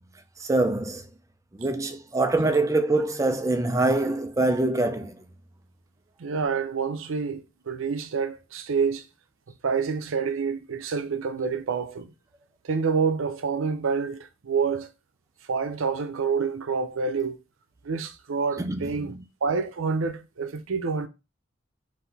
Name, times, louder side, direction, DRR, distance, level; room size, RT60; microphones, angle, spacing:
voice 1, 0.4-1.0 1.6-5.2 18.6-19.2, right 2 dB, 15° right, 0.4 m, -24 dB
voice 2, 6.2-9.1 9.6-12.1 12.6-14.9 15.5-17.4 17.8-19.1 19.4-21.1, right 5 dB, 85° right, 0.6 m, -27 dB
3.9 x 2.7 x 4.0 m
head